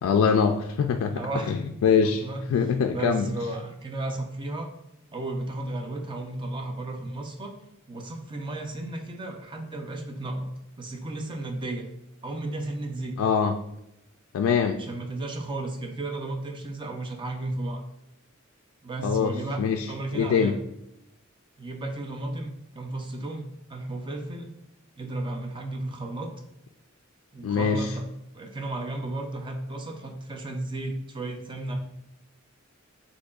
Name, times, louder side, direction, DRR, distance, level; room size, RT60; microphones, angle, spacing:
voice 1, 0.0-1.2 1.5-2.2 2.5-3.3 13.2-13.6 14.3-14.8 19.0-20.6 27.4-27.9, left 6 dB, 80° left, 6 dB, 0.3 m, -24 dB
voice 2, 1.1-1.6 2.0-2.4 2.9-4.7 5.1-7.5 7.9-10.5 10.8-11.9 12.2-13.2 14.8-17.8 18.8-19.6 19.9-20.6 21.6-24.5 25.0-26.3 27.3-28.1 28.3-31.8, right 2 dB, 25° right, 3 dB, 0.5 m, -34 dB
6.3 x 2.8 x 2.4 m, 0.86 s
head